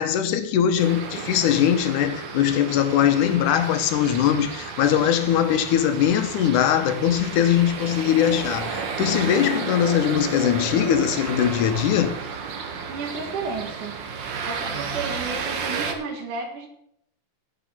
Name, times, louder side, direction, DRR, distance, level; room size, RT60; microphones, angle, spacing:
voice 1, 0.0-12.1, left 10 dB, 85° left, 2.4 m, -21 dB
sound 1, 0.8-15.9, right 5 dB, 55° right, 1.4 m, -32 dB
voice 2, 12.9-14.0 14.4-16.7, right 4 dB, 85° right, 3.0 m, -32 dB
10.0 x 7.2 x 7.3 m
omnidirectional pair, 3.6 m